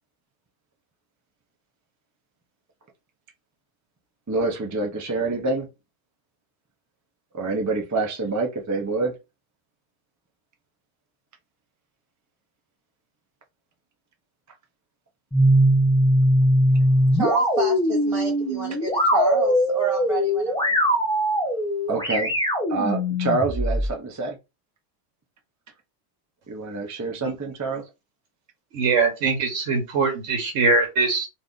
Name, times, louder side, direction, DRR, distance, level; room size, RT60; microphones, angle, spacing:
voice 1, 4.3-5.7 7.3-9.1 21.9-22.3 22.7-24.4 26.5-27.8, right 3 dB, 25° right, 0.3 m, -26 dB
sound 1, 15.3-23.9, equal, 5° left, 0.7 m, -21 dB
voice 2, 17.1-20.8, right 4 dB, 55° right, 1.1 m, -30 dB
voice 3, 28.7-31.3, right 4 dB, 80° right, 1.2 m, -22 dB
2.6 x 2.5 x 3.5 m
omnidirectional pair, 1.3 m